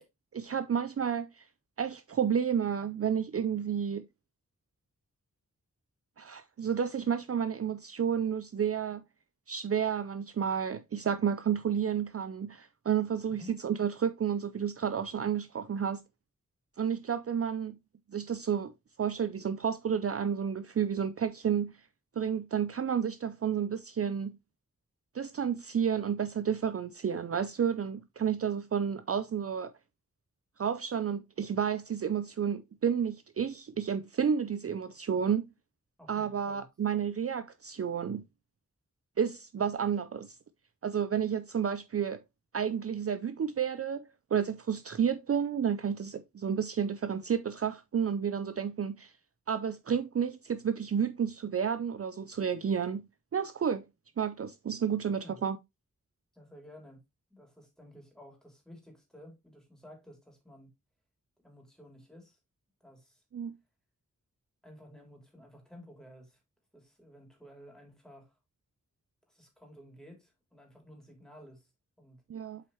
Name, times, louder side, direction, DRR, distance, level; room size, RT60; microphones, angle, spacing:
voice 1, 0.3-1.5 1.8-4.1 6.2-9.0 9.5-16.0 16.8-17.8 18.1-18.7 19.0-21.7 22.2-24.4 25.1-29.7 30.6-35.5 36.1-38.2 39.2-40.4 40.8-42.2 42.5-44.0 44.3-49.1 49.5-53.0 53.3-53.8 54.2-55.6 63.3-63.5 72.3-72.6, right 7 dB, 50° right, 0.5 m, -31 dB
voice 2, 36.0-36.6 55.2-55.4 56.3-57.0 57.3-60.7 61.4-62.4 62.8-63.2 64.6-66.4 66.7-68.4 69.3-71.7 72.0-72.2, equal, ahead, 3.1 m, -53 dB
7.7 x 4.6 x 3.1 m
wide cardioid pair, 70°, 31 cm